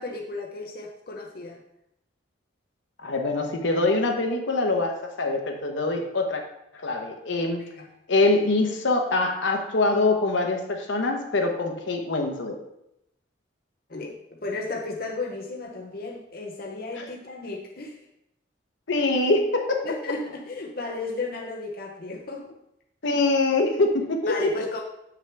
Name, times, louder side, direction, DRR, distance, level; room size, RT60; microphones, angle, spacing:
voice 1, 0.0-1.6 7.8-7.9 13.9-18.0 19.8-22.5 24.3-24.8, left 3 dB, 50° left, 0 dB, 0.7 m, -34 dB
voice 2, 3.0-6.4 6.7-7.6 8.1-12.6 17.0-17.1 18.9-19.9 23.0-24.7, left 2 dB, 70° left, 3 dB, 0.9 m, -24 dB
7.2 x 5.9 x 3.4 m, 0.82 s
head